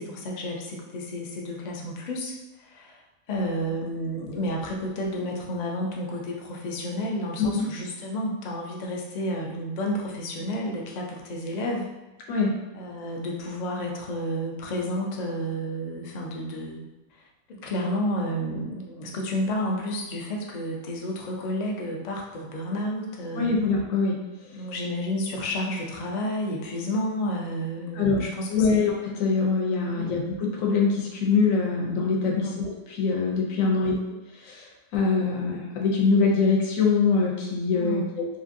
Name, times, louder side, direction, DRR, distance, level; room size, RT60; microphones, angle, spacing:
voice 1, 0.0-2.3 2.6-3.0 3.3-11.9 12.7-16.9 17.5-23.6 24.5-28.8 29.9-30.1 32.3-32.6 33.6-33.9 37.7-38.1, equal, 60° left, -1 dB, 0.4 m, -31 dB
voice 2, 23.3-24.2 28.0-28.2 28.5-33.9 34.4-34.6 34.9-38.3, left 4 dB, 85° left, -1 dB, 1.0 m, -23 dB
2.9 x 2.6 x 2.5 m, 1.0 s
omnidirectional pair, 1.3 m